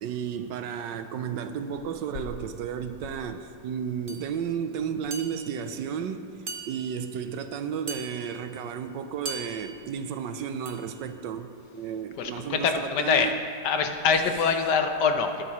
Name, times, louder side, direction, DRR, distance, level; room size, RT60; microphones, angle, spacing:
voice 1, 0.0-13.4, right 7 dB, 80° right, 9 dB, 1.3 m, -33 dB
sound 1, 4.1-4.3 5.1-5.7 6.5-7.1 7.9-8.5 9.3-9.9 10.7-11.0, right 3 dB, 45° right, 0.7 m, -39 dB
voice 2, 12.2-13.4 13.6-15.4, left 5 dB, 70° left, 6 dB, 1.3 m, -24 dB
20.0 x 9.5 x 3.1 m, 2.5 s
omnidirectional pair, 2.0 m